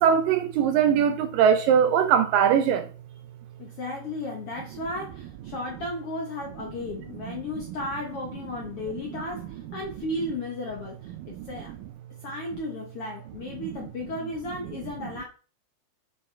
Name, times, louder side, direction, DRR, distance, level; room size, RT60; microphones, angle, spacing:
voice 1, 0.0-2.9 11.4-11.5, right 8 dB, 80° right, 2.0 m, -21 dB
voice 2, 3.6-11.7 12.2-15.2, left 2 dB, 65° left, 1.5 m, -34 dB
8.6 x 6.0 x 3.4 m
omnidirectional pair, 4.4 m